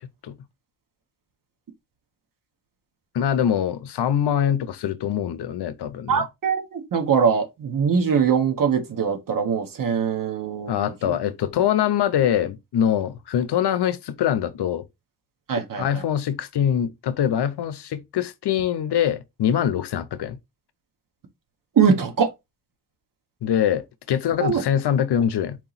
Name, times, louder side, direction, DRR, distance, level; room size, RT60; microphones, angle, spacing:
voice 1, 3.1-6.3 10.7-14.8 15.8-20.4 23.4-25.6, left 9 dB, 90° left, 0.7 m, -23 dB
voice 2, 6.1-11.2 15.5-16.0 21.8-22.3 24.4-24.6, right 6 dB, 55° right, 1.0 m, -22 dB
4.5 x 2.9 x 4.0 m
wide cardioid pair, 175°, 39 cm